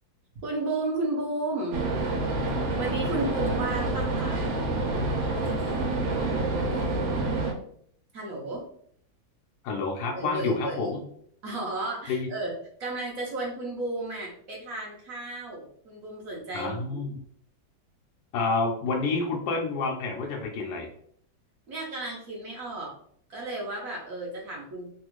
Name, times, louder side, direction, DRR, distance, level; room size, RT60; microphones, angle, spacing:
voice 1, 0.4-1.8 2.8-4.5 8.1-8.6 10.2-10.9 11.4-17.1 21.7-23.0 23.3-24.9, right 2 dB, 60° right, -2 dB, 0.9 m, -33 dB
sound 1, 1.7-7.5, right 2 dB, 75° right, 1.4 m, -27 dB
voice 2, 9.6-11.0 12.1-12.3 16.5-17.2 18.3-20.9, left 3 dB, 75° left, 1 dB, 0.9 m, -29 dB
3.3 x 2.4 x 3.0 m, 0.63 s
omnidirectional pair, 2.2 m